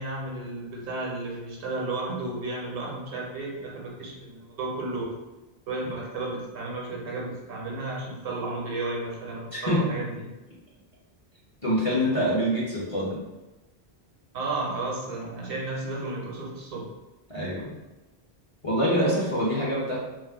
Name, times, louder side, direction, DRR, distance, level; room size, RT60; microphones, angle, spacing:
voice 1, 0.0-5.2 5.7-10.3 14.3-16.9, right 2 dB, 65° right, -3 dB, 0.8 m, -33 dB
voice 2, 11.6-13.2 17.3-17.7 18.6-20.0, equal, 40° left, -7 dB, 0.6 m, -25 dB
2.4 x 2.0 x 3.3 m, 1.1 s
omnidirectional pair, 1.1 m